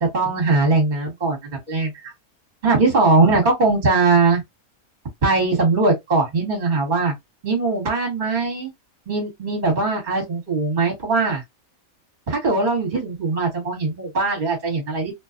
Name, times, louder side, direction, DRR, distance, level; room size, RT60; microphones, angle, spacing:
voice 1, 0.0-2.1 2.6-4.4 5.2-7.1 7.4-8.7 9.1-11.4 12.3-15.1, right 3 dB, 35° right, 1.3 m, -20 dB
2.8 x 2.2 x 2.4 m
omnidirectional pair, 1.5 m